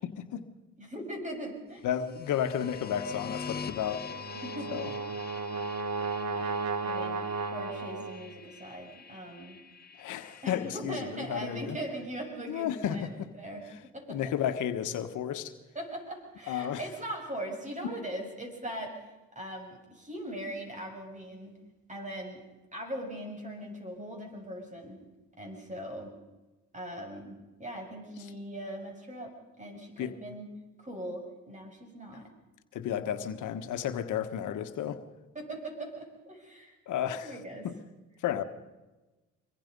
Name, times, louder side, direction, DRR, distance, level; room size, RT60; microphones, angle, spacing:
voice 1, 0.0-0.4 1.8-4.0 4.7-4.9 10.0-11.8 12.5-13.3 14.1-15.5 16.5-16.8 17.8-17.9 30.0-30.1 32.7-35.0 36.9-37.3 37.6-37.7 38.2-38.4, left 9 dB, 80° left, 1.4 m, -32 dB
voice 2, 0.8-1.9 4.3-4.8 5.5-5.6 6.3-6.6 6.8-9.6 10.4-13.6 13.9-14.3 15.7-19.0 19.4-21.5 21.9-22.4 22.7-25.0 25.4-26.1 26.7-30.5 30.8-32.3 35.4-36.8 37.2-37.7, right 1 dB, 25° right, 7.1 m, -40 dB
sound 1, 1.9-10.7, left 5 dB, 30° left, 1.3 m, -44 dB
Brass instrument, 4.1-8.4, right 4 dB, 60° right, 1.7 m, -34 dB
25.0 x 22.0 x 5.4 m
cardioid pair, 90°, 30 cm